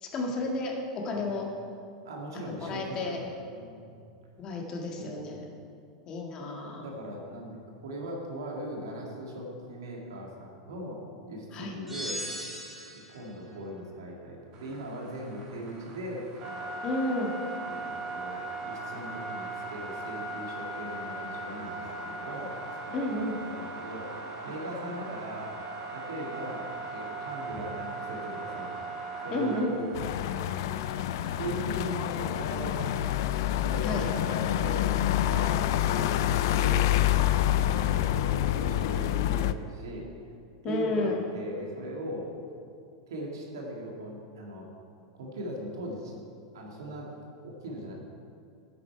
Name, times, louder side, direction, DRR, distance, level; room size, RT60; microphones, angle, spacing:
voice 1, 0.0-1.5 2.3-3.2 4.4-5.4 6.1-6.9 11.5-11.7 16.8-17.3 22.9-23.3 29.3-29.7 33.8-34.1 40.6-41.2, left 2 dB, 35° left, 0 dB, 2.0 m, -31 dB
voice 2, 2.0-3.9 5.0-5.3 6.8-7.6 7.8-12.2 12.9-16.7 17.6-22.6 23.0-24.1 24.4-25.5 25.9-28.7 29.2-29.9 30.4-33.2 33.5-40.1 40.6-42.3 43.1-44.7 45.1-46.1 46.5-47.1 47.4-47.9, right 1 dB, 80° right, -1 dB, 2.3 m, -39 dB
Power Up Bright A, 11.9-13.2, equal, 5° right, 2.3 m, -38 dB
sound 1, 14.5-32.1, right 2 dB, 45° right, 2.6 m, -39 dB
sound 2, 29.9-39.5, left 12 dB, 65° left, 0.4 m, -27 dB
10.0 x 8.4 x 4.6 m, 2.4 s
hypercardioid pair, 105°, 2 cm